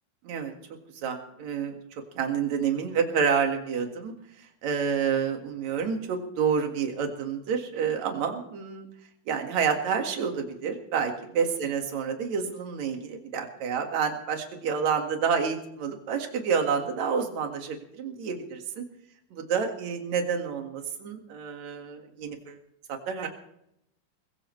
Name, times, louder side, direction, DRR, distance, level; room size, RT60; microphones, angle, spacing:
voice 1, 0.9-8.9 9.3-18.9 19.3-22.6 23.1-23.3, right 6 dB, 55° right, 3 dB, 2.9 m, -29 dB
21.0 x 18.5 x 3.3 m, 0.76 s
omnidirectional pair, 4.5 m